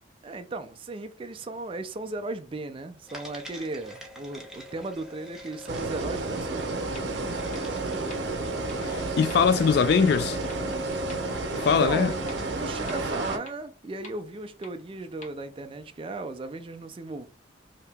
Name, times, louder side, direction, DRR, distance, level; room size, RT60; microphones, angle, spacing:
voice 1, 0.2-7.8 11.6-17.3, right 2 dB, 30° right, 0.4 m, -36 dB
sound 1, 3.1-12.6, left 1 dB, 5° right, 0.7 m, -40 dB
sound 2, 5.7-13.4, right 3 dB, 70° right, 0.8 m, -31 dB
sound 3, 6.9-7.0 7.5-7.6 8.1-8.2 8.7-8.8 9.3-9.4 9.9-10.0 10.5-10.6 11.1-11.2 11.7-11.8 12.3-12.4 12.9-13.0 13.5-13.6 14.0-14.1 14.6-14.7 15.2-15.3, left 3 dB, 40° left, 0.7 m, -44 dB
voice 2, 8.8-10.4 11.5-12.1, left 6 dB, 60° left, 0.3 m, -22 dB
2.8 x 2.8 x 3.4 m
head